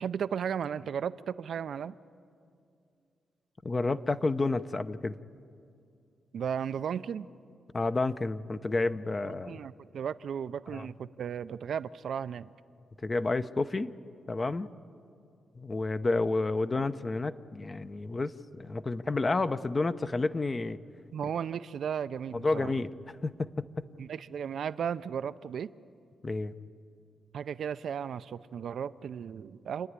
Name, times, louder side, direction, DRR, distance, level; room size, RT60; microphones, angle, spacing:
voice 1, 0.0-1.9 6.3-7.3 9.2-12.5 21.1-22.7 24.0-25.7 27.3-29.9, right 8 dB, 70° right, 13 dB, 0.5 m, -35 dB
voice 2, 3.6-5.2 7.7-9.6 10.7-10.9 13.0-13.9 14.3-14.7 15.6-20.8 22.3-23.7 26.2-26.5, left 3 dB, 30° left, 11 dB, 0.7 m, -30 dB
28.5 x 10.0 x 9.6 m, 2.4 s
cardioid pair, 75°, 0 cm